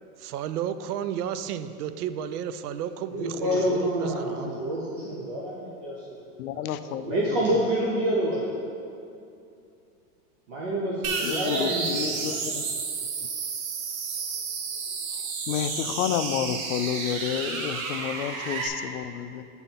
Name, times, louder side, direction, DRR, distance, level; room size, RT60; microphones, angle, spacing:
voice 1, 0.2-4.6, right 9 dB, 80° right, 12 dB, 0.5 m, -32 dB
voice 2, 3.1-6.2 6.5-8.5 10.5-12.4, right 1 dB, 25° right, -6 dB, 0.4 m, -28 dB
voice 3, 6.4-7.2 11.2-12.6 15.1-15.2 15.5-19.4, left 9 dB, 70° left, 11 dB, 0.5 m, -30 dB
sound 1, 11.0-18.7, right 5 dB, 65° right, 1.0 m, -31 dB
7.0 x 4.0 x 5.7 m, 2.5 s
supercardioid pair, 160°, 45 cm